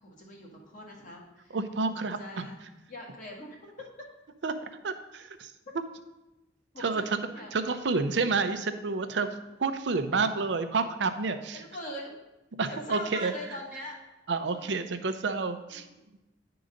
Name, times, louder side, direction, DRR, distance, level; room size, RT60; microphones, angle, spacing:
voice 1, 0.0-1.6 1.9-2.6 2.9-3.6 6.7-7.7 11.5-12.1 12.7-14.0 14.4-14.7 15.7-16.0, left 1 dB, 45° left, -2 dB, 1.6 m, -42 dB
voice 2, 1.5-2.5 4.4-4.5 4.8-5.5 6.8-7.0 7.5-9.3 9.6-11.6 12.6-13.3 14.3-15.9, right 4 dB, 75° right, 9 dB, 0.6 m, -29 dB
10.0 x 3.9 x 5.1 m, 0.99 s
head